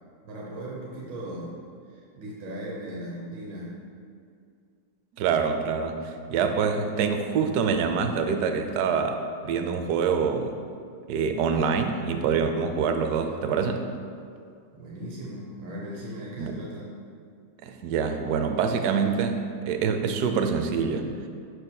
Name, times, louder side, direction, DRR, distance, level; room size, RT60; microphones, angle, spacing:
voice 1, 0.2-1.5 1.9-3.8 14.7-16.9, right 1 dB, 90° right, -4 dB, 1.6 m, -38 dB
voice 2, 5.2-10.5 11.1-13.8 16.4-16.5 17.6-21.1, right 6 dB, 70° right, 6 dB, 1.0 m, -25 dB
11.5 x 4.5 x 2.2 m, 2.3 s
omnidirectional pair, 1.9 m